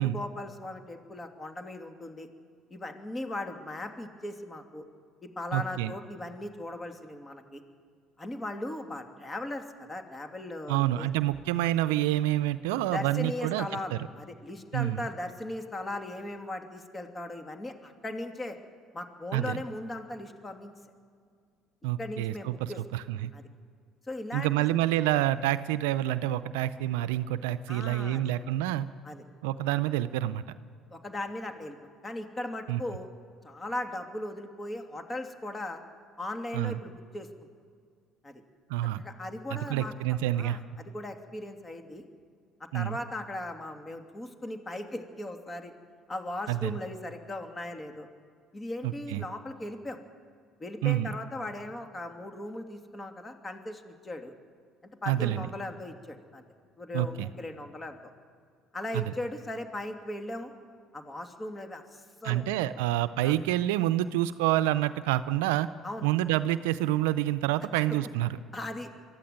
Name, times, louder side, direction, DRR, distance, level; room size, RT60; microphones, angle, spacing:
voice 1, 0.0-2.3 2.7-4.9 5.4-7.6 8.2-11.1 12.9-18.6 18.9-20.7 22.0-22.8 23.3-23.4 24.1-24.5 27.7-28.3 29.0-29.2 30.9-31.8 32.0-33.1 33.4-35.8 36.2-37.3 38.2-38.4 39.0-39.9 40.4-42.0 42.7-45.7 46.1-48.1 48.5-50.0 50.6-54.3 54.8-56.4 56.8-58.0 58.7-60.5 60.9-62.4 63.2-63.3 65.8-66.1 67.9-68.0 68.5-68.9, left 1 dB, 25° left, 5 dB, 2.7 m, -38 dB
voice 2, 5.5-5.9 10.7-14.0 14.7-15.0 19.3-19.6 21.8-23.3 24.3-28.9 29.4-30.4 32.7-32.8 36.5-36.8 38.7-39.0 39.5-40.6 42.7-43.0 46.5-46.8 48.8-49.3 50.8-51.2 55.1-55.5 56.9-57.3 58.9-59.0 62.2-65.7 66.0-68.4, right 14 dB, 80° right, 13 dB, 0.5 m, -28 dB
23.5 x 13.5 x 9.4 m, 2.1 s
hypercardioid pair, 65°, 0 cm